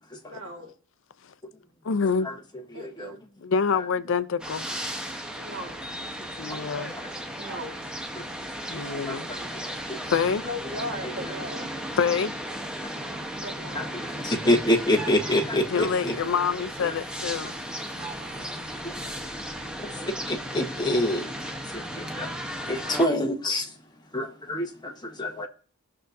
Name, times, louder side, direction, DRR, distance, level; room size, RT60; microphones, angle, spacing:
voice 1, 0.3-0.7 2.7-3.2 5.4-5.8 7.4-7.8 8.6-9.3 10.4-11.7 13.4-13.9 18.0-18.6, equal, 70° right, 1.8 m, -38 dB
voice 2, 1.8-2.3 3.4-4.9 6.4-6.9 8.7-9.3 10.1-10.4 11.9-12.3 15.7-17.5, left 6 dB, 65° left, 0.5 m, -26 dB
voice 3, 2.7-3.2 7.0-7.1 8.2-8.3 9.1-9.4 9.9-10.0 11.2-11.3 12.8-13.1 13.7-16.1 16.8-17.0 18.8-19.0 19.8-22.3 22.7-23.7 24.1-25.5, left 1 dB, 20° left, 1.3 m, -27 dB
sound 1, 4.4-23.1, equal, 5° right, 0.9 m, -35 dB
18.5 x 6.5 x 2.6 m
head